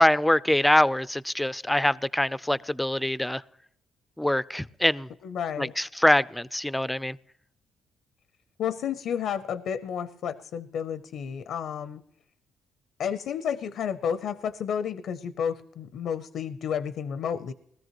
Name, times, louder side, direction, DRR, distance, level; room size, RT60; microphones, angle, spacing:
voice 1, 0.0-3.4 4.2-5.1 5.6-7.2, left 1 dB, 5° left, 0.4 m, -24 dB
voice 2, 5.2-5.7 8.6-12.0 13.0-17.5, left 8 dB, 75° left, 0.6 m, -31 dB
20.5 x 14.0 x 3.0 m
cardioid pair, 90°, 0 cm